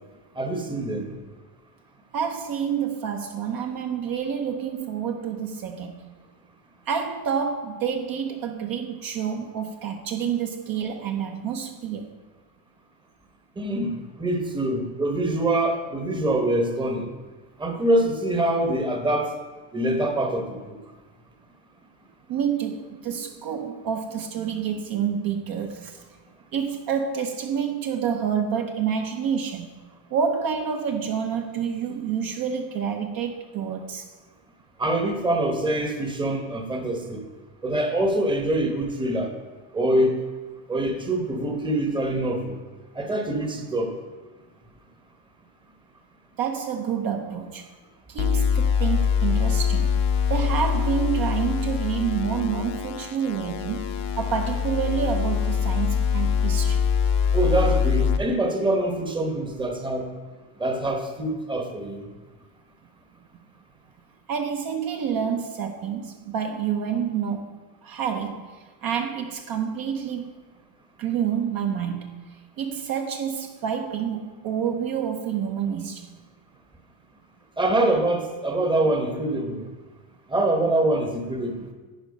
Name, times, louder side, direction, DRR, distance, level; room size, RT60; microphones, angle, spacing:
voice 1, 0.4-1.1 13.6-17.1 17.6-19.3 19.7-20.6 34.8-37.2 37.6-39.3 39.7-40.2 40.7-42.6 42.9-43.9 57.3-60.1 60.6-62.0 77.6-79.7 80.3-81.6, right 1 dB, 10° right, 0.9 m, -24 dB
voice 2, 2.1-6.1 6.9-12.1 22.3-26.0 26.5-29.7 30.1-34.1 46.4-47.7 48.1-50.0 50.3-56.9 64.3-70.4 71.0-72.2 72.6-76.1, right 7 dB, 45° right, 0.8 m, -28 dB
sound 1, 48.2-58.2, left 7 dB, 60° left, 0.9 m, -24 dB
10.5 x 4.4 x 5.2 m
supercardioid pair, 110°, 48 cm